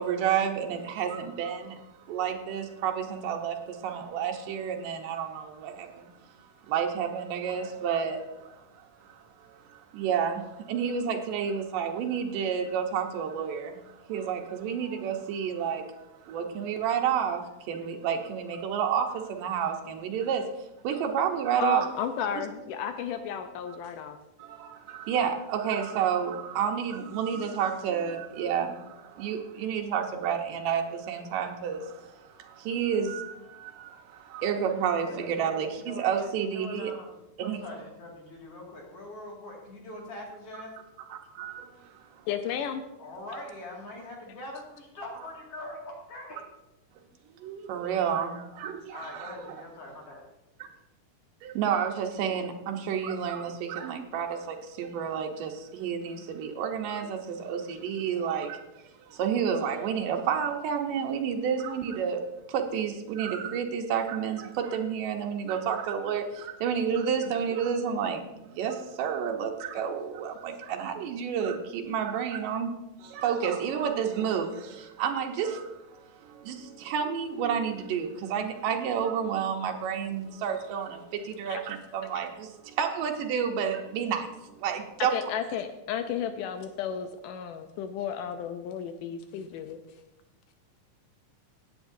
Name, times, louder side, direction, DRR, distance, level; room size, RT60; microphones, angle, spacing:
voice 1, 0.0-6.1 6.4-8.5 9.0-15.9 16.2-20.5 20.8-21.9 24.4-36.9 37.4-37.6 41.1-42.2 47.4-49.6 50.6-50.7 51.4-58.6 59.1-62.2 62.5-84.3 84.6-85.1, right 7 dB, 85° right, 2 dB, 2.6 m, -30 dB
voice 2, 21.6-24.2 42.3-42.8 81.5-81.6 85.1-89.8, left 8 dB, 80° left, 8 dB, 2.2 m, -33 dB
voice 3, 34.7-36.1 36.4-37.2 37.4-40.7 43.0-46.4 48.9-50.3, left 1 dB, 50° left, -2 dB, 3.0 m, -43 dB
16.5 x 8.8 x 2.7 m, 0.94 s
omnidirectional pair, 3.8 m